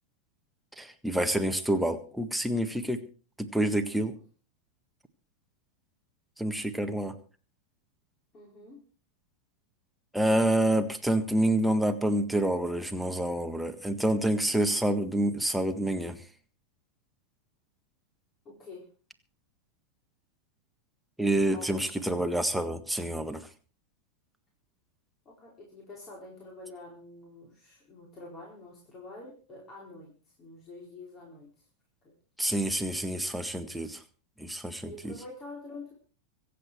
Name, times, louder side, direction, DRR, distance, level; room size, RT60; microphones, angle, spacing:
voice 1, 0.8-3.0 3.4-4.1 6.4-7.1 10.1-16.2 21.2-23.4 32.4-34.0 34.4-35.1, right 1 dB, ahead, 7 dB, 1.6 m, -28 dB
voice 2, 8.3-8.8 18.4-18.8 21.5-21.9 25.2-31.7 32.0-32.1 34.8-35.9, left 2 dB, 30° left, -1 dB, 4.2 m, -47 dB
25.0 x 8.4 x 4.6 m, 0.39 s
figure-of-eight pair, 90°, 0 cm